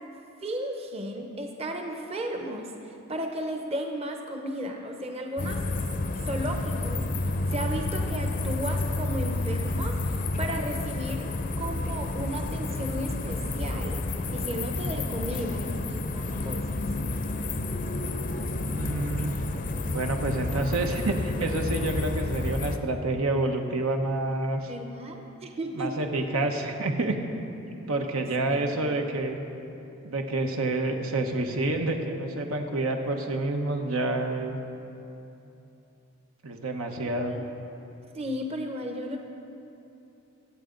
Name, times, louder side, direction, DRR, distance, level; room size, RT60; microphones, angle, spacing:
voice 1, 0.4-5.6 6.2-7.0 7.5-11.3 11.6-14.0 14.3-16.7 24.7-26.1 28.5-28.7 37.0-37.4 38.1-39.2, right 1 dB, 30° right, 3 dB, 0.8 m, -34 dB
sound 1, 5.4-22.8, left 2 dB, 40° left, 0.6 m, -30 dB
voice 2, 18.5-19.3 19.8-24.7 25.7-27.2 27.9-29.4 30.0-34.6 36.4-37.4, right 2 dB, 80° right, 4 dB, 1.1 m, -28 dB
24.0 x 8.3 x 3.9 m, 2.8 s
head